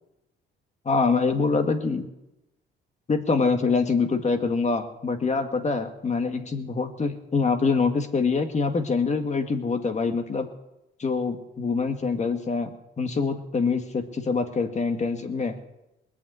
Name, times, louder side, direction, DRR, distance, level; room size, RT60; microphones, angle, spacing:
voice 1, 0.9-2.1 3.1-10.5 11.0-15.6, left 4 dB, 35° left, 6 dB, 2.0 m, -25 dB
20.5 x 7.1 x 9.6 m, 0.92 s
cardioid pair, 90°, 20 cm